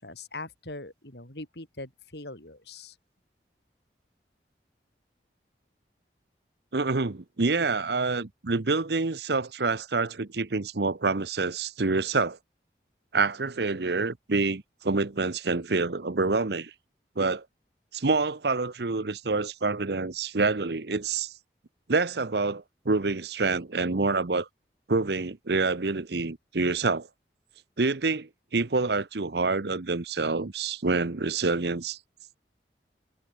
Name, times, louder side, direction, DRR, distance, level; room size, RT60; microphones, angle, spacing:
voice 1, 0.0-2.9, left 2 dB, 75° left, 6.2 m, -41 dB
voice 2, 6.7-12.4 13.1-16.7 17.2-17.4 17.9-21.3 21.9-24.5 24.9-27.1 27.8-32.0, right 3 dB, 70° right, 0.9 m, -27 dB
head